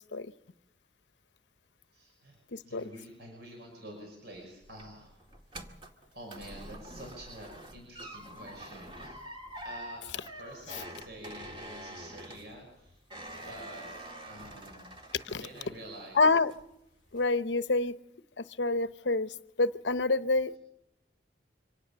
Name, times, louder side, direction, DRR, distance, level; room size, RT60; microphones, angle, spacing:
voice 1, 1.9-2.4 2.6-5.2 6.1-9.2 9.6-13.0 13.3-13.9 14.2-16.2, right 1 dB, 65° right, 6.1 m, -48 dB
voice 2, 2.5-2.8 10.7-10.8 15.1-15.4 16.1-16.5 17.1-18.0 18.6-19.3 19.6-20.6, left 3 dB, 90° left, 0.9 m, -27 dB
sound 1, 4.3-15.9 16.2-16.8 17.1-17.3, right 1 dB, 30° right, 2.1 m, -46 dB
25.0 x 18.0 x 6.8 m
head